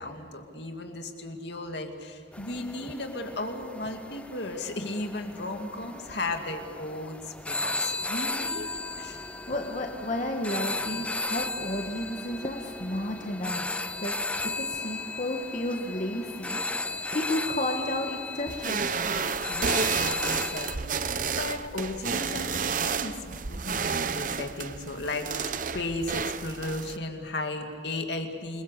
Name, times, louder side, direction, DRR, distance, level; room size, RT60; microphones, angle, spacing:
voice 1, 0.0-9.3 19.3-25.3 25.7-28.6, left 2 dB, 65° left, 4 dB, 2.4 m, -35 dB
sound 1, 2.3-20.8, left 2 dB, 5° left, 0.6 m, -35 dB
voice 2, 9.5-14.2 14.4-16.6 17.1-18.9, left 1 dB, 40° left, 2 dB, 1.5 m, -32 dB
sound 2, 18.5-27.0, right 5 dB, 45° right, 0.8 m, -31 dB
27.5 x 22.0 x 6.7 m, 2.1 s
head